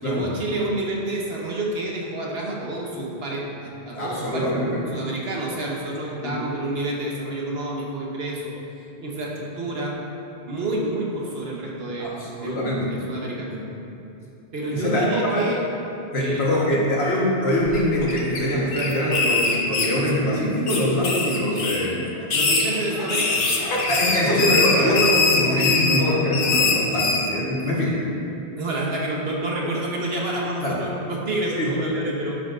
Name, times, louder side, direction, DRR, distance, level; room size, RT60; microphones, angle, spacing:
voice 1, 0.0-4.5 4.9-8.5 9.0-9.9 10.4-12.6 12.9-13.5 14.5-15.6 16.1-16.8 22.3-23.4 27.5-28.0 28.6-32.4, right 1 dB, 65° right, -3 dB, 1.4 m, -28 dB
voice 2, 3.9-4.8 6.2-6.3 12.0-12.9 13.5-13.6 14.7-15.5 16.1-22.0 23.9-28.0 30.6-30.8 31.6-31.7, left 1 dB, 65° left, -5 dB, 1.8 m, -23 dB
sound 1, 17.7-18.4 18.7-20.3 20.7-21.9 22.2-27.3, left 3 dB, 80° left, 1.2 m, -22 dB
10.0 x 7.6 x 2.6 m, 2.7 s
omnidirectional pair, 1.1 m